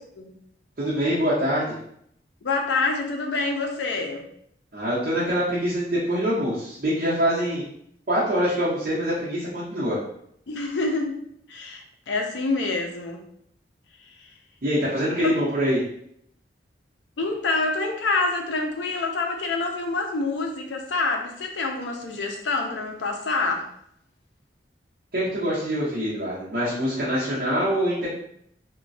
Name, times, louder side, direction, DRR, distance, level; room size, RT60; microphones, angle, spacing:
voice 1, 0.8-1.6 4.7-7.6 8.1-10.0 14.6-15.8 25.1-28.1, equal, 55° right, -9 dB, 0.7 m, -24 dB
voice 2, 2.4-4.3 10.5-11.2 11.5-13.2 15.2-15.3 17.2-23.7, left 3 dB, 85° left, 3 dB, 0.5 m, -26 dB
3.0 x 2.2 x 2.6 m, 0.69 s
head